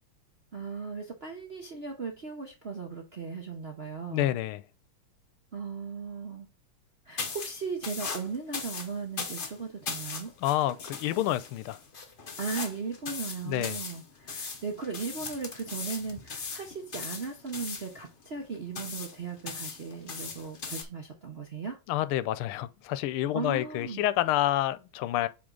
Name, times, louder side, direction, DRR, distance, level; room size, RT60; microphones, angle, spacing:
voice 1, 0.5-4.3 5.5-6.5 7.1-10.3 12.4-21.8 23.3-24.0, right 5 dB, 55° right, 0.6 m, -37 dB
voice 2, 4.1-4.6 10.4-11.8 13.5-13.8 21.9-25.3, left 14 dB, 90° left, 1.5 m, -28 dB
sound 1, 7.2-20.8, left 5 dB, 45° left, 0.6 m, -39 dB
7.9 x 3.7 x 3.7 m
omnidirectional pair, 2.3 m